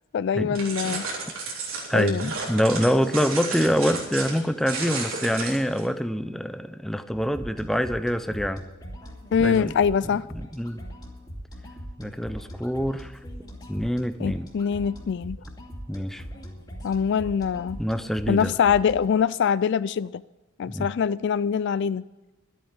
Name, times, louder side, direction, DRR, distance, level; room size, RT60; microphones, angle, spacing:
voice 1, 0.1-1.1 1.9-2.3 9.3-10.3 14.2-15.4 16.8-17.8 18.3-20.2 20.6-22.0, left 7 dB, 55° left, 18 dB, 0.3 m, -23 dB
sound 1, 0.5-5.8, right 4 dB, 70° right, 3.7 m, -33 dB
voice 2, 1.9-8.6 9.4-9.7 10.6-10.8 12.0-13.2 13.7-14.5 15.9-16.2 17.8-18.5 20.7-20.9, equal, ahead, 10 dB, 0.5 m, -25 dB
sound 2, 7.1-19.1, equal, 20° left, 2.5 m, -41 dB
12.5 x 9.0 x 7.5 m, 1.1 s
head